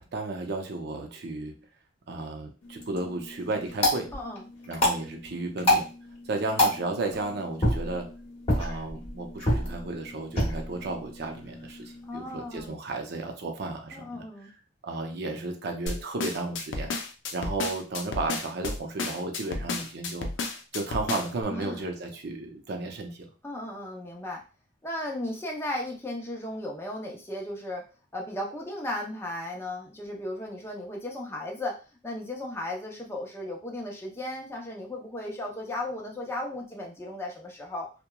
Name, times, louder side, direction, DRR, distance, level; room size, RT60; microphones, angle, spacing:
voice 1, 0.0-1.5 2.1-4.2 4.7-5.9 6.3-8.1 8.6-14.5 14.8-16.9 17.3-20.3 20.7-23.2, right 2 dB, 60° right, 4 dB, 0.5 m, -33 dB
sound 1, 2.6-12.7, left 1 dB, 35° left, 0.9 m, -30 dB
voice 2, 4.1-4.5 12.1-12.7 13.9-14.5 21.5-21.8 23.4-24.4 24.8-27.8 28.1-31.8 32.0-37.9, left 1 dB, 15° left, -1 dB, 0.6 m, -35 dB
sound 2, 15.9-21.4, left 3 dB, 85° left, 0.5 m, -32 dB
2.9 x 2.1 x 2.2 m, 0.33 s
head